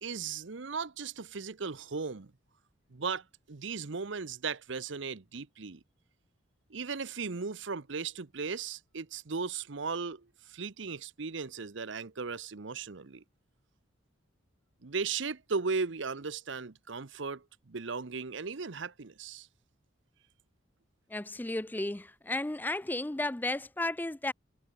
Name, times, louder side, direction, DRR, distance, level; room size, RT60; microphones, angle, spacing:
voice 1, 0.0-2.3 2.9-5.8 6.7-13.2 14.8-19.5, right 5 dB, 65° right, 0.9 m, -37 dB
voice 2, 21.1-24.3, left 2 dB, 10° left, 0.5 m, -33 dB
head